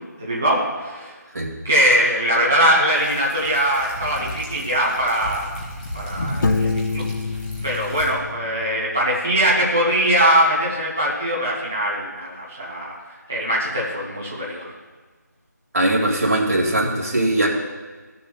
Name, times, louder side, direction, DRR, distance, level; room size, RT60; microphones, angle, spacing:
voice 1, 0.2-1.2 1.6-5.6 5.9-7.0 7.6-12.9 13.3-14.7, equal, 5° right, -6 dB, 0.5 m, -21 dB
sound 1, 2.9-8.1, left 1 dB, 30° left, 2.1 m, -33 dB
Piano, 6.4-9.2, left 4 dB, 80° left, 0.4 m, -27 dB
voice 2, 15.7-17.5, right 1 dB, 50° right, -2 dB, 2.1 m, -20 dB
14.5 x 6.9 x 2.3 m, 1.3 s
figure-of-eight pair, 180°, 10 cm